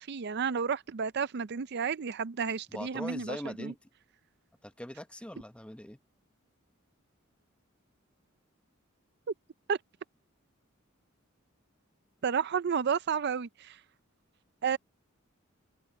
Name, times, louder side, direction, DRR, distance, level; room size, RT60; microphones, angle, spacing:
voice 1, 0.0-3.7 9.7-9.8 12.2-13.8 14.6-14.8, right 6 dB, 55° right, 0.5 m, -31 dB
voice 2, 2.7-3.8 4.6-6.0, left 1 dB, 5° left, 0.9 m, -41 dB
open air
head